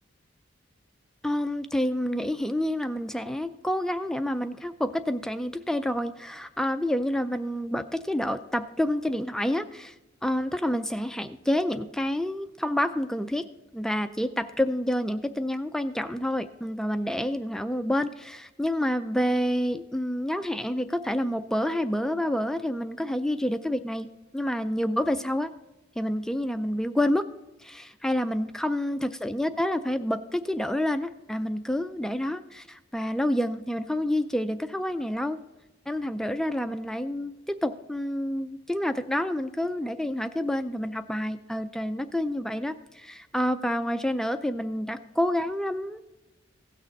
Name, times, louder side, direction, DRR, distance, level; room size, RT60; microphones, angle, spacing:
voice 1, 1.2-9.9 10.2-13.5 13.7-24.1 24.3-25.5 26.0-27.2 27.6-35.4 35.9-46.0, left 1 dB, 5° left, 9 dB, 0.3 m, -28 dB
16.5 x 6.5 x 3.9 m, 1.1 s
head